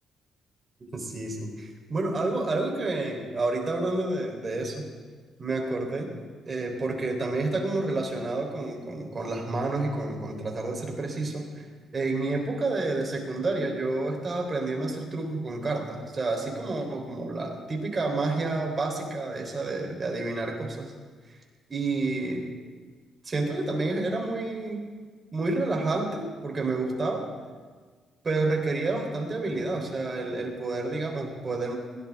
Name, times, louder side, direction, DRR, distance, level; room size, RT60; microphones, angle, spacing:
voice 1, 0.9-4.9 5.4-6.1 6.5-11.6 11.9-20.9 21.7-22.4 23.2-24.8 25.3-27.3 28.2-31.7, right 2 dB, 35° right, 2 dB, 3.8 m, -29 dB
21.5 x 17.0 x 3.7 m, 1.5 s
cardioid pair, 90°, 0 cm